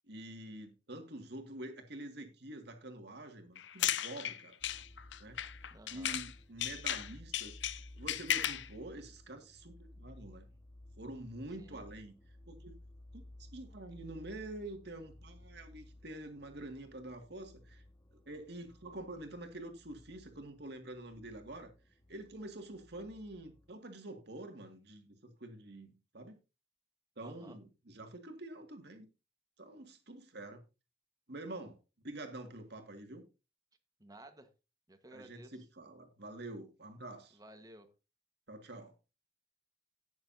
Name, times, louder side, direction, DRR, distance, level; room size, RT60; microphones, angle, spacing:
voice 1, 0.0-4.6 5.2-5.4 5.9-7.6 8.0-10.5 11.0-12.1 12.5-12.8 13.1-17.8 18.3-21.7 22.1-26.4 27.2-29.1 29.6-30.7 31.3-31.8 32.0-33.2 35.1-37.4 38.5-38.9, right 1 dB, 65° right, 2.1 m, -47 dB
sound 1, 3.6-6.3 6.6-8.7, left 11 dB, 80° left, 0.7 m, -35 dB
sound 2, 4.6-23.7, left 1 dB, 25° left, 1.5 m, -57 dB
voice 2, 5.7-6.2 11.6-11.8 27.2-27.6 34.0-34.5 34.9-35.6 37.3-37.9, right 1 dB, 20° right, 1.3 m, -55 dB
18.0 x 6.9 x 2.7 m
head